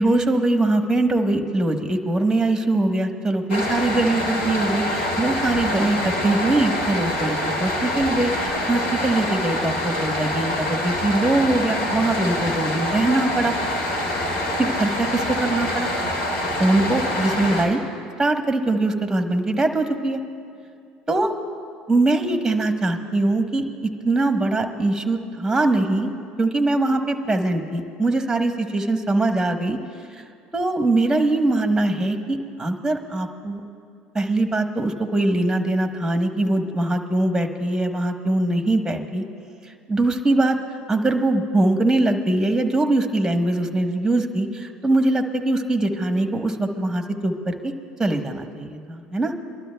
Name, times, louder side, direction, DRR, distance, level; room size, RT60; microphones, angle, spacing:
voice 1, 0.0-13.8 14.6-15.9 16.6-17.8 18.2-20.2 21.1-21.3 21.9-29.8 30.1-30.2 30.5-33.6 34.1-39.2 39.9-40.6 40.9-47.7 48.0-49.3, right 2 dB, 10° right, 6 dB, 1.1 m, -22 dB
sound 1, 3.5-17.6, left 1 dB, 75° left, 2.1 m, -25 dB
29.0 x 12.0 x 2.3 m, 2.3 s
hypercardioid pair, 75°, 4 cm